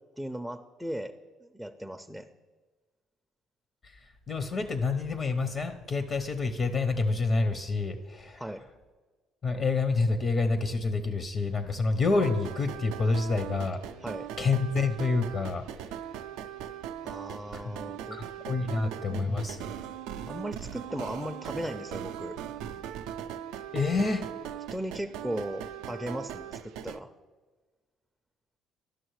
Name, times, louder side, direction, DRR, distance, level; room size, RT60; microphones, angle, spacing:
voice 1, 0.2-1.1 1.4-2.3 8.4-8.7 14.0-14.3 17.0-18.2 18.6-19.6 20.3-22.4 24.7-27.1, equal, ahead, 7 dB, 0.4 m, -37 dB
voice 2, 3.8-8.5 9.4-13.8 14.4-16.0 17.5-17.7 18.1-19.6 23.7-24.2, left 3 dB, 45° left, 9 dB, 0.6 m, -28 dB
sound 1, 12.2-27.0, right 10 dB, 85° right, 0.3 m, -40 dB
11.5 x 6.2 x 3.1 m, 1.4 s
supercardioid pair, 85°, 0 cm